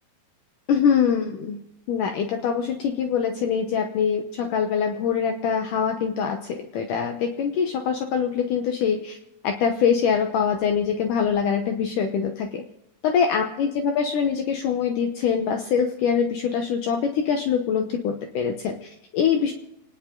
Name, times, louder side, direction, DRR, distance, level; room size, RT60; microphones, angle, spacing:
voice 1, 0.7-1.6 1.9-9.1 9.4-12.6 13.0-19.5, left 7 dB, 70° left, 4 dB, 2.4 m, -24 dB
28.5 x 10.5 x 3.8 m, 0.85 s
omnidirectional pair, 4.2 m